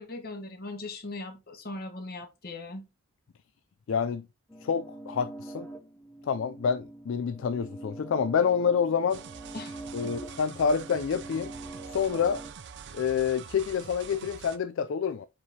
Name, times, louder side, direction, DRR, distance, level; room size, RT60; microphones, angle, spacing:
voice 1, 0.0-2.8 9.5-10.1, left 2 dB, 45° left, 1.1 m, -40 dB
voice 2, 3.9-4.3 4.6-5.7 6.3-9.2 9.9-11.5 11.9-12.4 12.9-15.3, left 6 dB, 60° left, 0.3 m, -27 dB
sound 1, 4.5-12.5, right 2 dB, 10° left, 0.6 m, -44 dB
sound 2, 9.1-14.6, right 7 dB, 55° right, 0.5 m, -45 dB
7.1 x 4.8 x 2.8 m
head